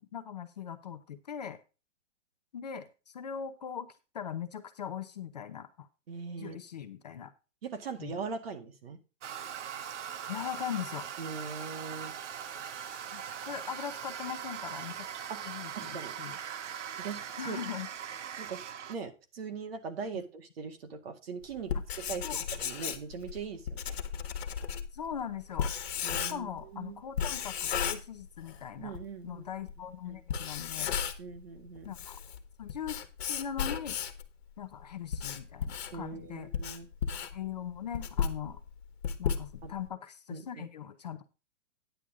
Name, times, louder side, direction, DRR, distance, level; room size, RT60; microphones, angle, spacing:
voice 1, 0.0-1.6 2.5-2.9 3.1-3.9 4.1-5.9 6.4-7.3 8.0-8.2 10.3-11.1 13.1-15.1 15.4-16.4 17.4-17.9 22.2-22.5 24.9-25.7 26.1-29.0 29.2-30.9 31.8-32.2 32.6-34.0 34.6-36.5 37.3-38.6 39.2-41.2, left 8 dB, 35° left, 9 dB, 0.6 m, -40 dB
voice 2, 6.1-6.6 7.6-9.0 11.2-12.1 15.3-15.4 15.7-16.2 17.0-17.6 18.4-18.6 18.9-21.7 22.1-22.3 22.6-24.0 26.0-27.0 28.8-29.5 30.0-30.2 31.2-32.0 35.9-36.9 39.6-39.7 40.3-40.7, right 5 dB, 50° right, 6 dB, 1.9 m, -40 dB
Toilet flush, 9.2-19.0, right 8 dB, 70° right, 1.0 m, -41 dB
Writing, 21.6-26.6 27.2-28.6 28.9-29.0 29.7-29.8 30.2-31.4 31.8-34.3 34.8-39.9, left 7 dB, 55° left, 1.6 m, -34 dB
10.0 x 8.6 x 3.7 m, 0.31 s
hypercardioid pair, 180°, 37 cm